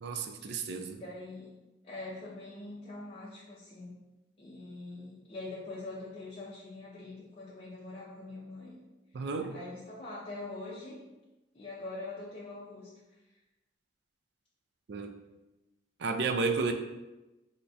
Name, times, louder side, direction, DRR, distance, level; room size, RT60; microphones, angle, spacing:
voice 1, 0.0-1.0 9.1-9.5 14.9-15.1 16.0-16.7, right 4 dB, 55° right, 6 dB, 0.3 m, -32 dB
voice 2, 1.0-1.5 1.8-3.9 4.4-8.8 9.5-11.0 11.5-12.9, left 2 dB, 30° left, -8 dB, 0.5 m, -43 dB
3.9 x 2.2 x 3.4 m, 1.0 s
head